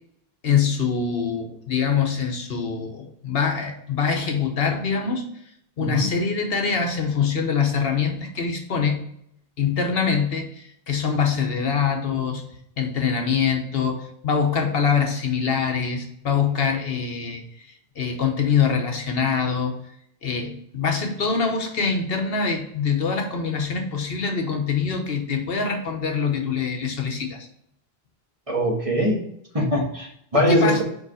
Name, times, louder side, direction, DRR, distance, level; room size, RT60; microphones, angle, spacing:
voice 1, 0.4-5.2 5.8-9.0 9.6-12.4 12.8-19.8 20.2-27.5 30.3-30.8, left 6 dB, 70° left, 4 dB, 1.2 m, -24 dB
voice 2, 28.5-29.2 29.5-30.8, equal, 35° right, -1 dB, 1.6 m, -22 dB
5.2 x 4.8 x 4.8 m, 0.71 s
omnidirectional pair, 1.0 m